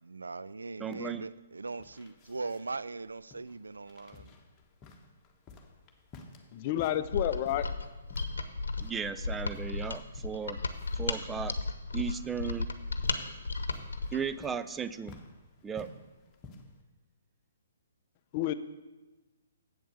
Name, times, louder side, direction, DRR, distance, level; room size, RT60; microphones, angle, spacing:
voice 1, 0.0-4.3, right 3 dB, 90° right, 0.3 m, -40 dB
voice 2, 0.8-1.2 8.8-10.6 10.9-11.5 11.9-12.7 14.1-15.2 15.6-15.9, right 6 dB, 10° right, 0.4 m, -35 dB
sound 1, 1.6-16.8, left 3 dB, 20° left, 1.3 m, -54 dB
voice 3, 6.5-7.7 18.3-18.5, left 12 dB, 40° left, 0.6 m, -29 dB
Mechanisms, 7.0-14.2, left 3 dB, 85° left, 0.9 m, -34 dB
8.1 x 7.7 x 6.6 m
hypercardioid pair, 140°, 0 cm